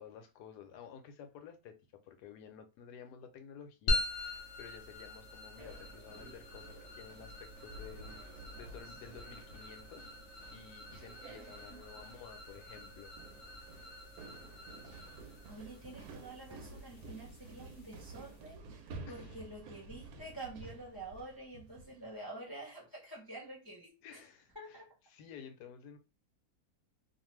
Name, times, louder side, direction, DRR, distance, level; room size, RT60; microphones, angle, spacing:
voice 1, 0.0-1.8 2.0-8.2 8.6-10.1 10.5-13.1 19.1-19.4 24.0-24.8 25.1-26.0, left 7 dB, 90° left, 1.2 m, -52 dB
sound 1, 3.9-18.5, left 1 dB, 60° left, 0.8 m, -43 dB
sound 2, 5.6-22.1, right 3 dB, 75° right, 1.0 m, -52 dB
voice 2, 15.5-24.2 24.5-24.9, right 2 dB, 20° left, 0.7 m, -48 dB
2.5 x 2.5 x 3.1 m
omnidirectional pair, 1.7 m